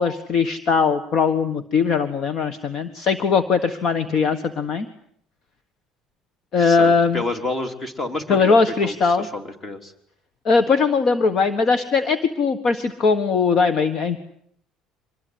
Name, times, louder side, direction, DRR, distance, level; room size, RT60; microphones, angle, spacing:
voice 1, 0.0-4.9 6.5-7.2 8.3-9.3 10.4-14.2, left 5 dB, 45° left, 11 dB, 1.6 m, -20 dB
voice 2, 6.6-8.6 8.8-9.9, left 2 dB, 25° left, 7 dB, 3.5 m, -29 dB
25.0 x 21.0 x 9.6 m, 0.68 s
cardioid pair, 140°, 0 cm